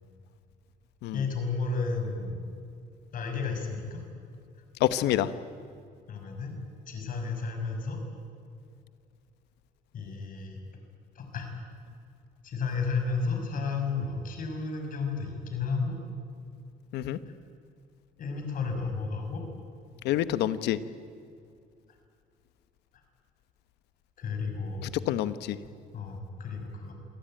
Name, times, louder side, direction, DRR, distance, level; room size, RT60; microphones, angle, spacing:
voice 1, 1.1-2.4 3.1-4.0 6.1-6.6 6.9-8.0 9.9-10.6 11.1-11.5 12.4-16.0 17.3-17.4 18.2-19.4 24.2-25.2 25.9-26.9, left 4 dB, 55° left, 4 dB, 6.2 m, -32 dB
voice 2, 4.8-5.3 16.9-17.2 20.0-20.8 25.1-25.6, left 13 dB, 85° left, 13 dB, 1.1 m, -27 dB
26.5 x 18.5 x 9.1 m, 2.4 s
cardioid pair, 110°, 17 cm